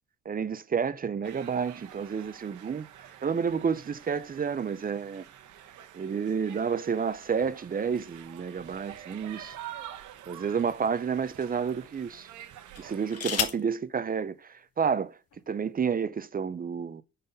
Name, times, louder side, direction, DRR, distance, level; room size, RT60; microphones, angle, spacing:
voice 1, 0.3-2.9 3.2-5.2 5.9-9.6 10.3-12.3 12.8-15.1 15.5-17.0, right 6 dB, 30° right, 0.5 m, -30 dB
sound 1, 1.2-13.2, right 11 dB, 80° right, 0.9 m, -47 dB
sound 2, 8.9-10.2 10.9-11.1 12.7-13.7 14.9-15.0 15.3-15.7, left 8 dB, 55° left, 1.1 m, -34 dB
5.5 x 4.0 x 5.4 m
cardioid pair, 90°, 30 cm